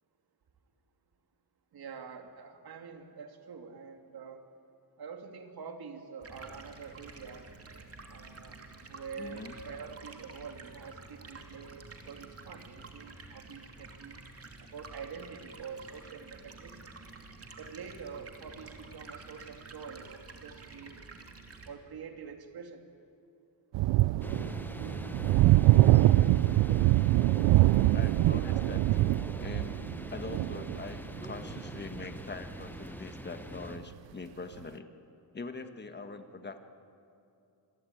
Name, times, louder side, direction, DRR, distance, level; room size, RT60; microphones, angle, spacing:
voice 1, 1.7-4.5 5.0-7.5 8.1-8.6 8.9-14.2 14.6-16.9 17.6-21.0 21.7-22.9, right 6 dB, 55° right, 5 dB, 2.6 m, -46 dB
Stream, 6.2-21.7, right 3 dB, 30° right, 2.8 m, -50 dB
voice 2, 9.2-9.6 27.9-29.8 30.1-34.9 35.3-36.6, left 3 dB, 25° left, 8 dB, 1.5 m, -43 dB
sound 1, 23.7-32.2 33.8-33.9, right 17 dB, 80° right, 0.5 m, -24 dB
sound 2, 24.2-33.8, left 1 dB, 5° left, 0.8 m, -42 dB
27.0 x 21.5 x 9.3 m, 2.7 s
cardioid pair, 140°, 44 cm